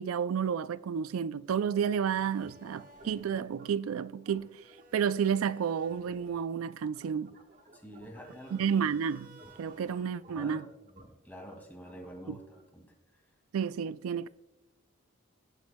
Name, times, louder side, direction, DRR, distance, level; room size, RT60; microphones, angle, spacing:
voice 1, 0.0-4.6 4.9-7.3 8.5-10.6 12.3-12.4 13.5-14.3, right 7 dB, 90° right, 0.3 m, -31 dB
sound 1, 2.1-12.5, right 1 dB, 40° right, 1.3 m, -56 dB
voice 2, 7.7-8.7 10.3-12.9, equal, 10° left, 2.0 m, -48 dB
18.0 x 6.2 x 2.2 m
head